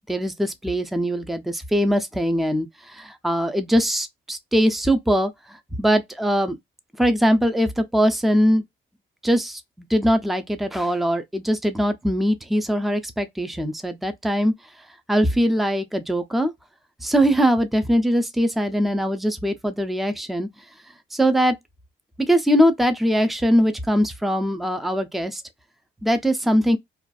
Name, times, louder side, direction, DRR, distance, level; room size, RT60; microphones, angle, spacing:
voice 1, 0.1-5.3 5.8-6.6 7.0-8.6 9.2-14.5 15.1-16.5 17.0-20.5 21.1-21.5 22.3-25.4 26.0-26.8, equal, ahead, 0.4 m, -21 dB
2.5 x 2.3 x 2.2 m
cardioid pair, 90°, 20 cm